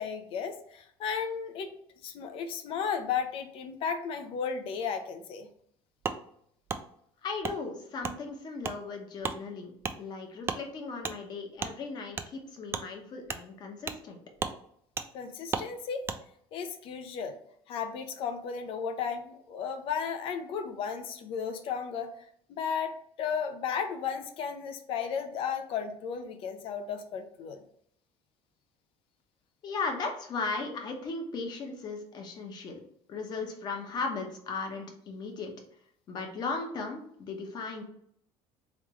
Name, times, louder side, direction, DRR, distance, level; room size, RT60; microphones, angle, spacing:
voice 1, 0.0-1.7 2.0-5.5 15.1-16.0 16.5-17.4 17.7-22.1 22.5-22.9 23.2-27.6, left 6 dB, 55° left, 7 dB, 0.7 m, -34 dB
Wood, 6.0-6.2 6.7-6.8 7.4-7.6 8.0-8.2 8.6-8.8 9.2-9.4 9.8-10.0 10.4-10.6 11.0-11.2 11.6-11.7 12.1-12.3 12.7-12.8 13.3-13.4 13.9-14.0 14.4-14.6 15.0-15.1 15.5-15.7 16.0-16.2, right 5 dB, 20° right, 0.3 m, -33 dB
voice 2, 7.2-9.7 10.0-14.2 29.6-32.8 33.1-35.5 36.1-37.8, left 4 dB, 40° left, 3 dB, 1.0 m, -36 dB
3.6 x 3.3 x 3.1 m, 0.67 s
cardioid pair, 135°, 11 cm